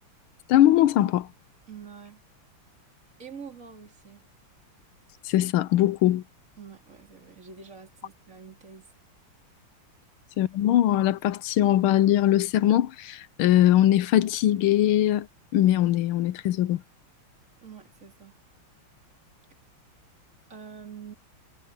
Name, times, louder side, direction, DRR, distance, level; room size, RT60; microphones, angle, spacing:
voice 1, 0.5-1.3 5.2-6.2 10.4-15.3 15.5-16.8, left 12 dB, 85° left, 1.5 m, -21 dB
voice 2, 1.7-2.2 3.2-4.2 6.6-8.9 17.6-18.4 20.5-21.1, right 6 dB, 35° right, 4.1 m, -45 dB
omnidirectional pair, 2.3 m